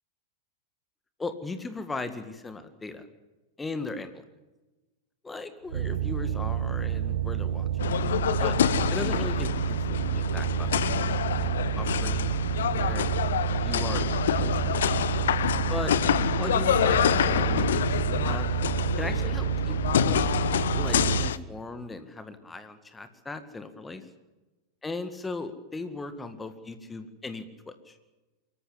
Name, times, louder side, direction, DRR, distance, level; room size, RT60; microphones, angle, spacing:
voice 1, 1.2-3.0 3.6-4.2 5.2-7.7 8.4-8.6 8.9-10.7 11.4-11.5 11.8-12.4 12.7-13.1 13.6-14.5 15.7-15.9 16.4-18.5 19.0-20.2 20.7-24.0 24.8-28.0, left 3 dB, 10° left, 10 dB, 1.9 m, -37 dB
sound 1, 5.7-21.3, right 10 dB, 65° right, 1.0 m, -29 dB
sound 2, 7.8-21.4, left 10 dB, 60° left, 0.8 m, -27 dB
24.0 x 14.5 x 9.8 m, 1.1 s
figure-of-eight pair, 90°, 0 cm